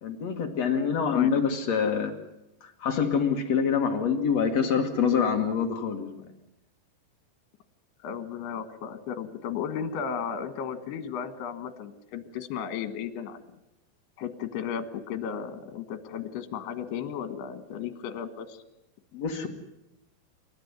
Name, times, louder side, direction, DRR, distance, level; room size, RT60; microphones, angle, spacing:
voice 1, 0.0-2.1 2.6-6.2 19.1-19.5, left 6 dB, 55° left, 5 dB, 2.0 m, -26 dB
voice 2, 8.0-13.4 14.2-18.6, left 7 dB, 75° left, 10 dB, 3.6 m, -34 dB
27.5 x 13.5 x 9.6 m, 0.89 s
omnidirectional pair, 4.9 m